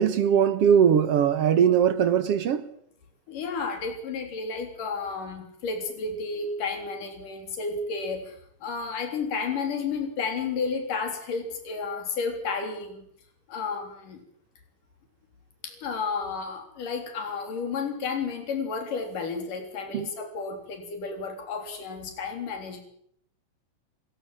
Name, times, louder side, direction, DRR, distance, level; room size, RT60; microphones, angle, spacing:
voice 1, 0.0-2.7 19.9-20.1, right 8 dB, 60° right, 1.8 m, -20 dB
voice 2, 3.3-8.4 8.6-13.0 13.5-14.2 15.6-22.8, left 4 dB, 75° left, 5.1 m, -32 dB
30.0 x 16.5 x 7.6 m
omnidirectional pair, 3.8 m